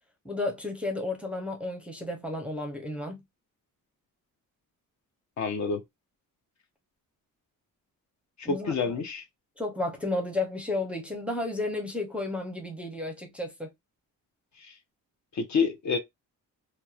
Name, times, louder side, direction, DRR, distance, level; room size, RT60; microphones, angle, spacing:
voice 1, 0.2-3.2 8.4-8.7 9.6-13.7, left 2 dB, 5° right, 0.6 m, -32 dB
voice 2, 5.4-5.8 8.4-9.2 14.6-14.7 15.3-16.0, left 5 dB, 55° left, 0.7 m, -28 dB
2.8 x 2.2 x 2.3 m
cardioid pair, 125°, 35 cm